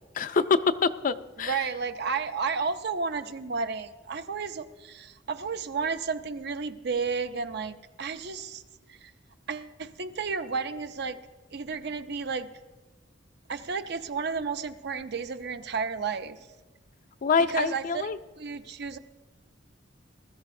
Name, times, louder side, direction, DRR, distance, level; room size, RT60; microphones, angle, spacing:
voice 1, 0.2-1.6 17.2-18.2, left 5 dB, 45° left, 13 dB, 0.4 m, -25 dB
voice 2, 1.4-8.6 8.9-9.1 9.5-11.2 11.5-12.5 13.5-16.4 17.4-18.1 18.4-19.0, right 5 dB, 60° right, 10 dB, 0.6 m, -32 dB
20.0 x 13.5 x 2.7 m, 1.3 s
head